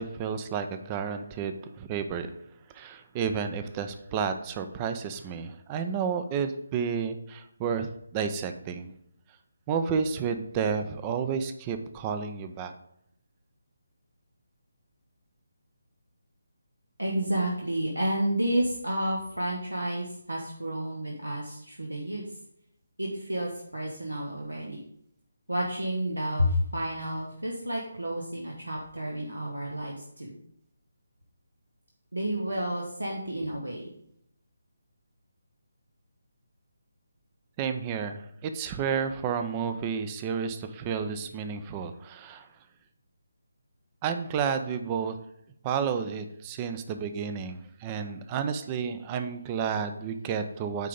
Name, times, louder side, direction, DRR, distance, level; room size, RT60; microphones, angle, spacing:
voice 1, 0.0-2.3 2.7-8.9 9.7-12.7 37.6-42.5 44.0-45.2 45.6-50.9, right 6 dB, 20° right, 9 dB, 0.6 m, -31 dB
voice 2, 17.0-22.2 23.0-24.8 25.5-30.3 32.1-33.9, equal, 80° right, -1 dB, 1.3 m, -30 dB
9.2 x 3.7 x 5.1 m, 0.74 s
figure-of-eight pair, 150°, 0 cm